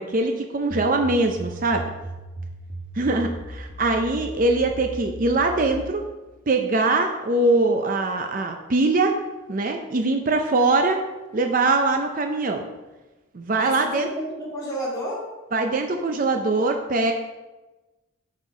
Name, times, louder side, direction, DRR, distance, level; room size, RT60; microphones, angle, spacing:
voice 1, 0.0-1.8 3.0-6.0 6.5-9.1 9.5-11.0 11.3-12.6 13.3-14.1 15.5-17.1, right 2 dB, 40° right, 4 dB, 0.5 m, -22 dB
sound 1, 0.7-6.0, right 1 dB, 90° right, 1.3 m, -37 dB
voice 2, 13.6-15.2, right 1 dB, 20° left, -6 dB, 2.2 m, -31 dB
8.1 x 4.4 x 4.9 m, 1.1 s
head